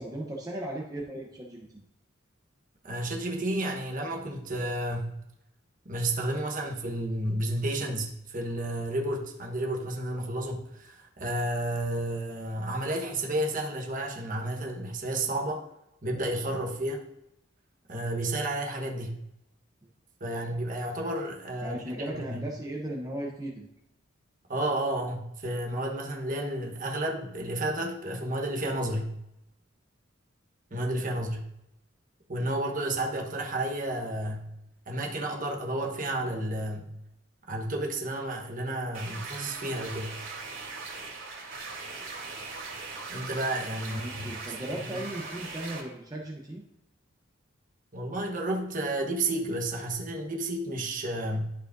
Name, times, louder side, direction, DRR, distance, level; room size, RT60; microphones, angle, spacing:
voice 1, 0.0-1.8 21.6-23.7 43.8-46.6, right 1 dB, 20° right, -2 dB, 0.8 m, -37 dB
voice 2, 2.8-5.2 5.8-15.6 16.0-17.0 17.9-19.2 20.2-21.8 22.1-22.4 24.5-29.2 30.7-31.5 32.3-34.5 34.9-36.9 37.5-40.2 43.1-44.3 44.7-45.0 47.9-51.5, right 1 dB, 45° right, 0 dB, 1.2 m, -31 dB
sound 1, 38.9-45.8, right 3 dB, 80° right, 2.9 m, -40 dB
12.0 x 4.9 x 2.6 m, 0.83 s
head